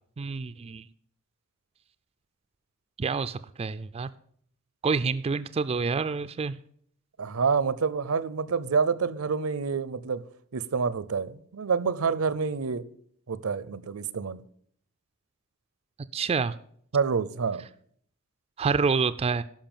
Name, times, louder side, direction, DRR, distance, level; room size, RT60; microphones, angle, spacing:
voice 1, 0.2-0.9 3.0-4.1 4.8-6.6 16.1-16.5 18.6-19.4, right 5 dB, 30° right, 0.3 m, -27 dB
voice 2, 7.2-10.2 10.5-12.8 13.3-14.4 16.9-17.7, right 5 dB, 80° right, 0.6 m, -27 dB
12.0 x 5.5 x 7.3 m
head